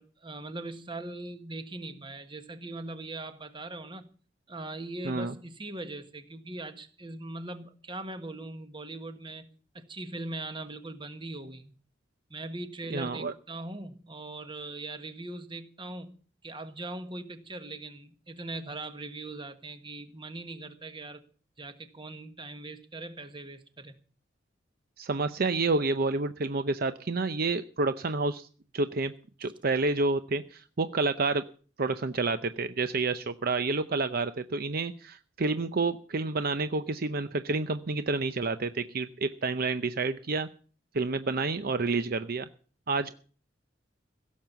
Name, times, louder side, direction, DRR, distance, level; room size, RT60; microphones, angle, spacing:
voice 1, 0.0-4.1 4.5-9.4 9.7-11.7 12.3-16.1 16.4-21.2 21.6-23.9, right 2 dB, 25° right, 9 dB, 1.5 m, -40 dB
voice 2, 12.9-13.3 25.0-28.5 28.7-29.1 29.4-31.4 31.8-40.5 40.9-42.5 42.9-43.1, right 3 dB, 55° right, 11 dB, 0.7 m, -29 dB
16.5 x 7.4 x 8.0 m, 0.41 s
head